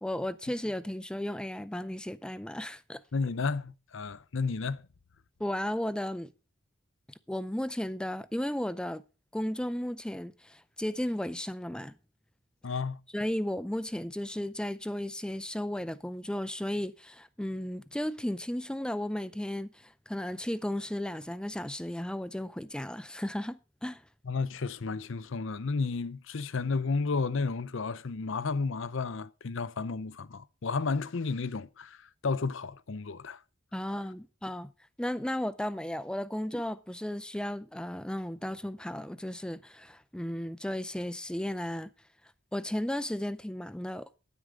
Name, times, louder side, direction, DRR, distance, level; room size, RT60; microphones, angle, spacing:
voice 1, 0.0-3.0 5.4-6.3 7.3-9.0 9.3-11.9 13.1-24.0 33.7-34.7 35.0-41.9 42.5-44.1, left 1 dB, 5° left, 0.5 m, -34 dB
voice 2, 3.1-4.8 12.6-13.0 24.2-33.4, left 4 dB, 60° left, 0.6 m, -32 dB
9.6 x 9.4 x 5.0 m
head